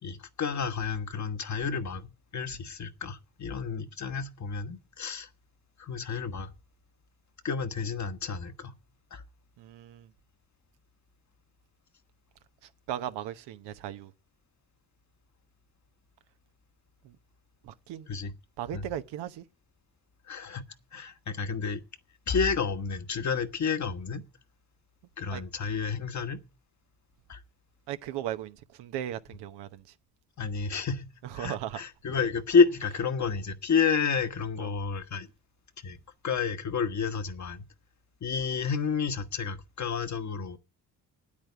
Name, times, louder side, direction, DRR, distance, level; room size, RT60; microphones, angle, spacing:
voice 1, 0.0-5.3 5.8-6.5 7.4-8.7 9.1-9.2 18.1-18.3 18.7-18.9 20.3-21.8 22.3-24.2 25.2-26.4 27.3-27.4 30.4-31.1 31.3-35.3 35.8-36.0 36.2-37.7 38.2-40.6, left 5 dB, 45° left, 1.3 m, -30 dB
voice 2, 9.6-10.1 12.9-14.1 17.0-17.1 17.6-18.1 18.6-19.4 25.3-25.4 27.9-29.8 31.3-31.8 34.6-34.7, right 11 dB, 80° right, 1.0 m, -37 dB
9.3 x 8.7 x 9.6 m
supercardioid pair, 60°, 40 cm